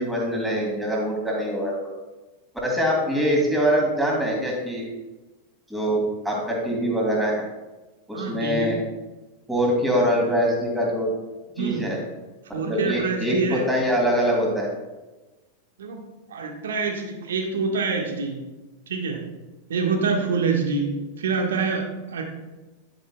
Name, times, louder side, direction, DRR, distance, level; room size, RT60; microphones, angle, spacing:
voice 1, 0.0-1.9 2.6-4.9 5.7-7.4 8.1-8.8 9.5-11.1 11.6-12.0 12.7-14.7, equal, 5° right, -2 dB, 2.9 m, -23 dB
voice 2, 8.1-8.7 11.6-11.9 12.5-13.6 15.8-16.0 16.3-18.4 18.9-19.2 19.7-22.2, right 4 dB, 65° right, 2 dB, 1.6 m, -26 dB
10.5 x 10.5 x 2.3 m, 1.1 s
figure-of-eight pair, 90°, 0 cm